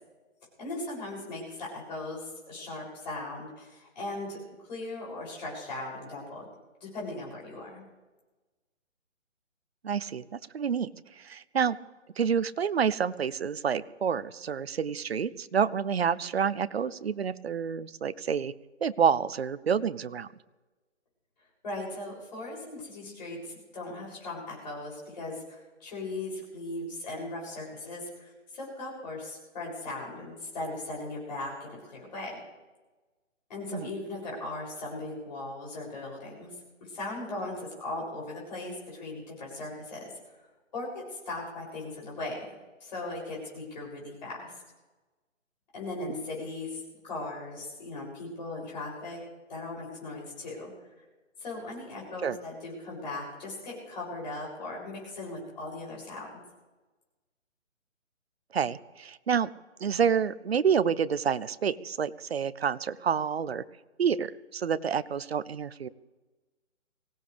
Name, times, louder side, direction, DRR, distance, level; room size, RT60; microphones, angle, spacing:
voice 1, 0.6-6.5 6.8-7.9 21.6-32.4 33.5-36.5 36.8-40.1 40.7-42.5 42.8-44.5 45.7-49.2 49.5-50.7 51.4-56.3, left 2 dB, 35° left, -4 dB, 7.3 m, -38 dB
voice 2, 9.8-10.2 10.5-10.9 11.2-11.8 12.2-18.5 18.8-20.3 33.7-33.9 52.2-52.4 58.5-59.5 59.8-63.6 64.0-65.9, right 7 dB, 50° right, 16 dB, 0.6 m, -28 dB
24.0 x 17.0 x 3.4 m, 1.2 s
hypercardioid pair, 170°, 39 cm